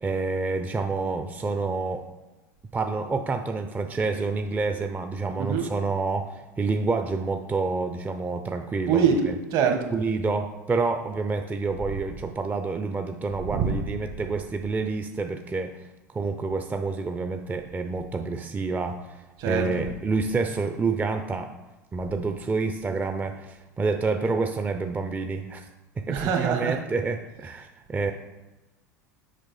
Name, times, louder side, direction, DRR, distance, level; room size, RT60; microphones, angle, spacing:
voice 1, 0.0-2.1 2.7-9.4 9.9-21.5 21.9-25.7 26.0-28.1, right 4 dB, 15° right, 6 dB, 0.5 m, -28 dB
voice 2, 8.9-9.2 9.5-9.9 13.5-13.7 19.4-19.7 26.1-26.8, right 7 dB, 55° right, 5 dB, 1.3 m, -23 dB
6.6 x 4.8 x 4.7 m, 1.1 s
hypercardioid pair, 85°, 9 cm